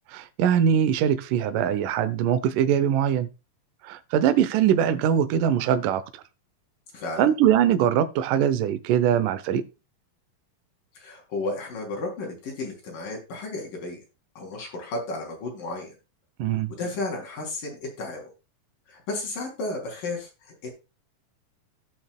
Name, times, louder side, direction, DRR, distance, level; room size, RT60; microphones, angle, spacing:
voice 1, 0.1-3.3 3.8-6.0 7.2-9.7 16.4-16.7, right 9 dB, 70° right, 2.3 m, -22 dB
voice 2, 6.9-7.3 11.0-14.0 14.4-15.9 16.8-18.3 18.9-20.7, left 2 dB, 65° left, 5.3 m, -33 dB
16.5 x 6.2 x 2.3 m
omnidirectional pair, 4.1 m